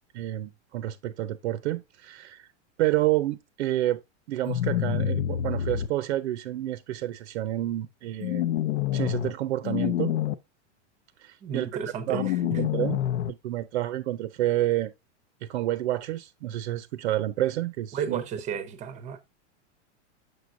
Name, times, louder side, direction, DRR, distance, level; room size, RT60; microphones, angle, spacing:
voice 1, 0.1-2.5 2.8-4.0 4.3-8.5 8.9-10.1 11.2-11.7 12.1-12.3 12.6-13.0 13.3-14.9 15.4-18.2, right 14 dB, 75° right, 0.7 m, -29 dB
sound 1, 4.4-5.9 8.2-9.3 9.6-10.3 12.1-13.3, left 11 dB, 75° left, 0.8 m, -27 dB
voice 2, 11.4-12.6 17.9-19.2, right 7 dB, 20° right, 0.7 m, -33 dB
6.7 x 6.2 x 2.6 m
supercardioid pair, 160°, 35 cm